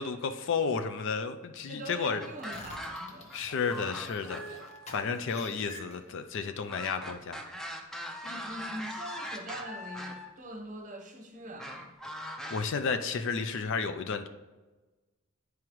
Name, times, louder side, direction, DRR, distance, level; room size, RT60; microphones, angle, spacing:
voice 1, 0.0-2.2 3.3-4.6 4.9-7.4 12.2-14.3, left 5 dB, 60° left, 9 dB, 0.4 m, -32 dB
voice 2, 1.7-3.4 8.2-11.9, right 1 dB, 35° right, 2 dB, 0.9 m, -43 dB
sound 1, 2.2-3.4 3.7-4.9 6.7-10.3 11.6-12.6, equal, ahead, 0.5 m, -40 dB
sound 2, 2.3-6.3, left 1 dB, 30° left, 0.9 m, -47 dB
9.4 x 4.8 x 3.0 m, 1.2 s
head